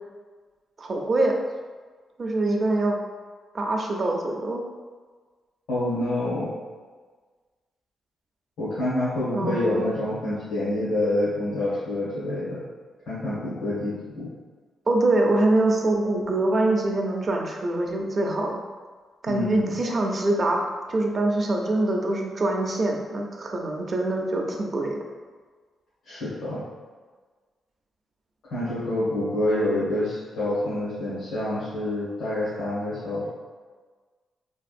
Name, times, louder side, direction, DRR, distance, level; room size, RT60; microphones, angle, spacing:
voice 1, 0.8-1.4 2.2-3.0 3.5-4.6 9.3-9.9 14.9-18.6 19.2-20.6 20.9-25.0, right 2 dB, 45° right, 1 dB, 0.5 m, -24 dB
voice 2, 5.7-6.5 8.6-12.6 13.1-14.3 19.3-19.7 26.0-26.6 28.5-33.3, left 1 dB, 90° left, -13 dB, 1.3 m, -27 dB
3.4 x 2.4 x 2.5 m, 1.4 s
cardioid pair, 90°, 0 cm